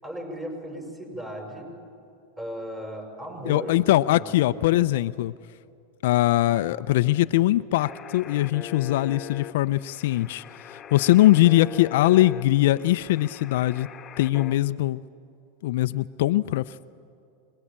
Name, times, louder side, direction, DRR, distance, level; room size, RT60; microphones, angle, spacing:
voice 1, 0.0-1.7 2.4-4.7 10.9-11.2, equal, 15° right, 3 dB, 6.7 m, -37 dB
voice 2, 3.5-5.3 6.0-13.9 14.2-15.0 15.6-16.6, left 15 dB, 70° left, 13 dB, 0.5 m, -21 dB
sound 1, 7.8-14.6, left 10 dB, 25° left, 1.4 m, -41 dB
26.5 x 20.5 x 8.8 m, 2.5 s
hypercardioid pair, 115°, 0 cm